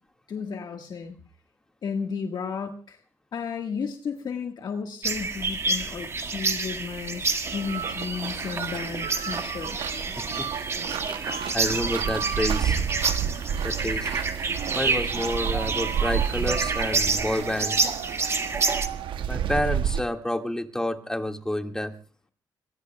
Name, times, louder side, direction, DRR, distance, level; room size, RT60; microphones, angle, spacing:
voice 1, 0.3-1.1 1.8-3.0 3.3-10.0, left 6 dB, 60° left, 3 dB, 1.6 m, -33 dB
sound 1, 5.0-18.9, right 3 dB, 35° right, 1.8 m, -29 dB
sound 2, 7.4-20.0, right 8 dB, 85° right, 0.8 m, -31 dB
voice 2, 10.2-10.5 11.1-12.9 13.6-14.1 14.5-17.9 19.3-21.9, left 1 dB, 5° left, 4 dB, 1.9 m, -29 dB
28.0 x 20.0 x 2.3 m, 0.39 s
cardioid pair, 100°, 8 cm